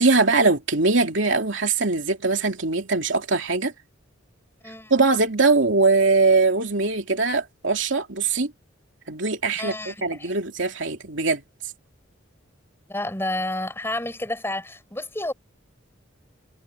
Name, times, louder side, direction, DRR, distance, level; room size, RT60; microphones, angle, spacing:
voice 1, 0.0-3.7 4.9-8.5 9.1-11.4, right 3 dB, 65° right, 3.0 m, -21 dB
voice 2, 9.5-10.3 12.9-15.3, left 1 dB, 10° left, 5.6 m, -30 dB
head